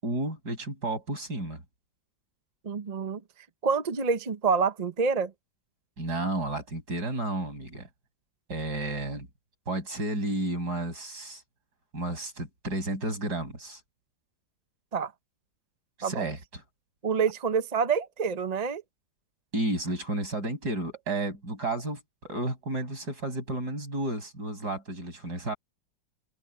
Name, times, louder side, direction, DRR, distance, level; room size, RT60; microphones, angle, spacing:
voice 1, 0.0-1.6 6.0-7.9 8.5-9.3 9.7-11.4 11.9-13.8 16.0-16.4 19.5-25.6, right 1 dB, 60° right, 7.0 m, -32 dB
voice 2, 2.6-3.2 3.6-5.3 14.9-15.1 16.0-16.3 17.0-18.8, right 5 dB, 40° right, 0.6 m, -27 dB
open air
omnidirectional pair, 2.0 m